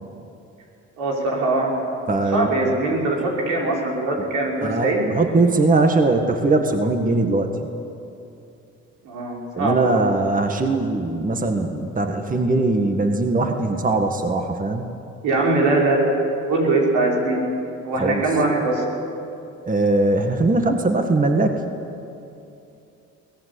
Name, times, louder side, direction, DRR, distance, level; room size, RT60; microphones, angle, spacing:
voice 1, 1.0-1.7 2.3-5.1 9.0-10.0 15.2-17.4 17.8-18.8, right 2 dB, 90° right, -2 dB, 5.5 m, -21 dB
voice 2, 2.1-2.7 4.6-7.5 9.5-14.9 18.0-18.2 19.6-21.6, right 2 dB, 25° right, 4 dB, 1.8 m, -20 dB
23.0 x 18.5 x 8.5 m, 2.7 s
cardioid pair, 90°, 30 cm